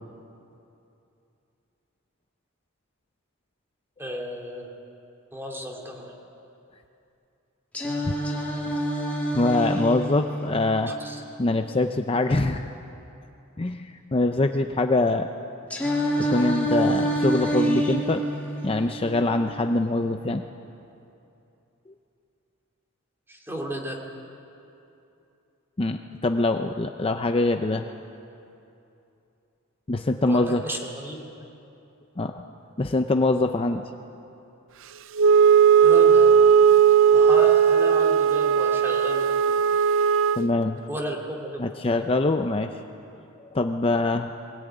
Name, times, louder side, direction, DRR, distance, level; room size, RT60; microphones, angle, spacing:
voice 1, 4.0-4.7 5.3-6.1 10.9-11.2 23.3-24.0 30.2-31.3 35.8-36.4 37.1-39.3 40.9-41.8, equal, 10° right, 0 dB, 2.6 m, -33 dB
Singing, 7.7-11.7 15.7-19.7, right 1 dB, 5° left, 2.9 m, -27 dB
voice 2, 9.3-10.9 11.4-12.7 13.6-15.3 16.3-18.2 18.6-20.4 25.8-27.8 29.9-30.6 32.2-32.4 32.8-33.8 40.4-40.8 41.6-42.7 43.5-44.3, left 2 dB, 25° left, 6 dB, 0.6 m, -24 dB
Wind instrument woodwind instrument, 35.2-40.5, right 7 dB, 65° right, 0.5 m, -17 dB
22.0 x 17.5 x 9.3 m, 2.8 s
head